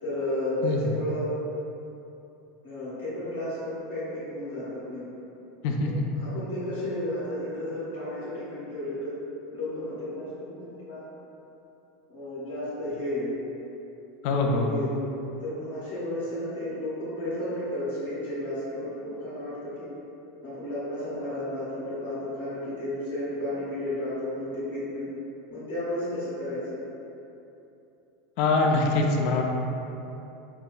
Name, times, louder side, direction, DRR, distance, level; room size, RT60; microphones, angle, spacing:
voice 1, 0.0-1.3 2.6-5.1 5.8-9.1 9.5-11.1 12.1-13.3 14.3-15.1 15.4-19.9 20.4-25.1 25.5-26.8, left 1 dB, 90° left, -13 dB, 1.4 m, -33 dB
voice 2, 5.6-6.1 14.2-14.7 28.4-29.4, left 3 dB, 60° left, 2 dB, 0.3 m, -24 dB
5.5 x 2.2 x 2.2 m, 2.9 s
hypercardioid pair, 90°, 0 cm